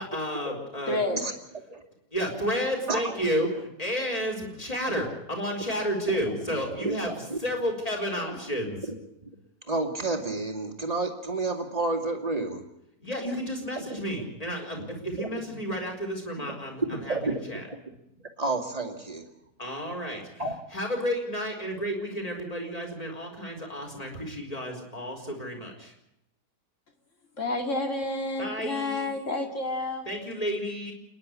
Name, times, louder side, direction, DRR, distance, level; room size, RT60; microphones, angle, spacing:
voice 1, 0.0-1.0 2.1-7.1 7.4-8.8 13.0-17.2 17.5-17.6 19.6-20.3 20.7-25.9 28.4-29.1 30.0-30.9, equal, 20° left, 2 dB, 4.7 m, -31 dB
voice 2, 0.9-1.2 27.4-30.1, left 2 dB, 50° left, 4 dB, 3.0 m, -29 dB
voice 3, 6.1-7.4 8.8-8.9 9.7-12.7 13.8-14.0 14.7-14.9 15.2-15.4 16.8-17.6 18.4-19.3 20.4-20.6, right 2 dB, 25° right, 4 dB, 2.3 m, -31 dB
28.0 x 11.0 x 9.8 m, 0.82 s
omnidirectional pair, 1.7 m